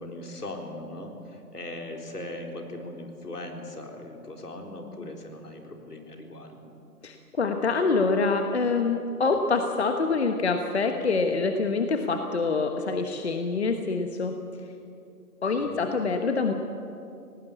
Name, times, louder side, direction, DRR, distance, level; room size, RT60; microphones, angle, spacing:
voice 1, 0.0-6.7 15.6-15.9, left 1 dB, 80° left, 2 dB, 4.1 m, -39 dB
voice 2, 7.0-14.4 15.4-16.5, left 4 dB, 45° left, 5 dB, 1.2 m, -25 dB
18.5 x 18.0 x 8.3 m, 2.6 s
hypercardioid pair, 170°, 46 cm